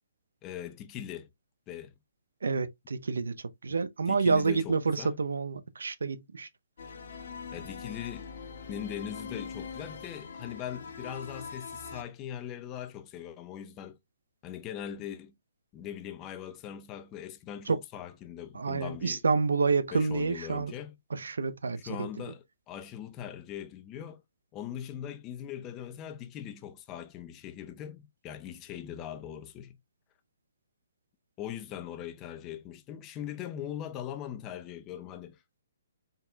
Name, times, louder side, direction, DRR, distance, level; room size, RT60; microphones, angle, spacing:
voice 1, 0.4-1.3 1.7-1.9 4.1-5.1 7.5-8.3 8.7-14.0 14.4-15.3 15.7-19.2 19.9-21.0 21.8-24.2 24.5-29.8 31.4-35.6, left 10 dB, 20° left, 0.6 m, -41 dB
voice 2, 2.4-3.3 3.6-6.5 17.7-17.8 18.5-20.7 21.1-22.1, right 4 dB, 85° right, 0.7 m, -28 dB
sound 1, 6.8-12.0, left 5 dB, 60° left, 1.4 m, -42 dB
4.2 x 4.0 x 2.2 m
hypercardioid pair, 155°, 0 cm